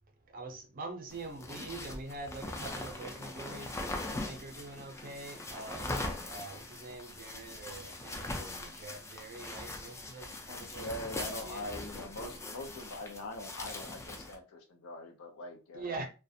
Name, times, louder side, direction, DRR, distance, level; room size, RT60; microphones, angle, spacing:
voice 1, 0.3-10.9 11.4-11.7 15.7-16.1, right 3 dB, 40° right, 0.5 m, -44 dB
sound 1, 1.1-14.3, left 2 dB, 15° left, 0.4 m, -41 dB
voice 2, 10.4-16.0, left 2 dB, 80° left, 0.5 m, -43 dB
2.4 x 2.1 x 2.7 m
head